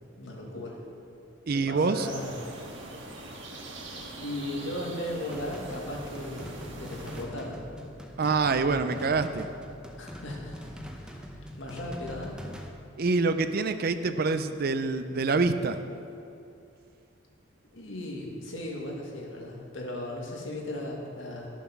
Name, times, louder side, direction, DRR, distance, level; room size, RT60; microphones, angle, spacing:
voice 1, 0.2-0.8 1.5-2.4 4.2-7.6 10.0-10.6 10.9-12.4 17.7-21.5, left 1 dB, 75° left, -1 dB, 2.0 m, -37 dB
voice 2, 1.5-2.1 8.2-9.5 13.0-15.8, right 4 dB, 50° right, 10 dB, 0.5 m, -26 dB
sound 1, 2.0-7.2, right 2 dB, 70° right, 1.7 m, -43 dB
sound 2, 5.3-12.7, equal, 5° right, 0.8 m, -43 dB
12.5 x 7.1 x 5.9 m, 2.7 s
head